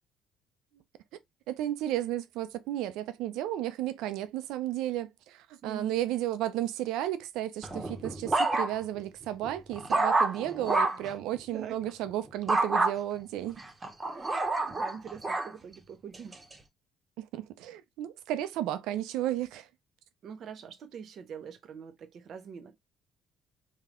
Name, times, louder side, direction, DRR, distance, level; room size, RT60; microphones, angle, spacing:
voice 1, 1.5-13.6 17.2-19.7, right 13 dB, 80° right, 0.5 m, -33 dB
voice 2, 5.6-5.9 11.5-11.8 14.1-16.4 20.2-22.7, right 7 dB, 60° right, 0.8 m, -44 dB
sound 1, 7.6-9.0 9.4-11.1 12.5-12.9 13.6-15.5 16.1-16.5, right 2 dB, 25° right, 0.9 m, -28 dB
3.5 x 2.2 x 3.6 m
supercardioid pair, 65°, 0 cm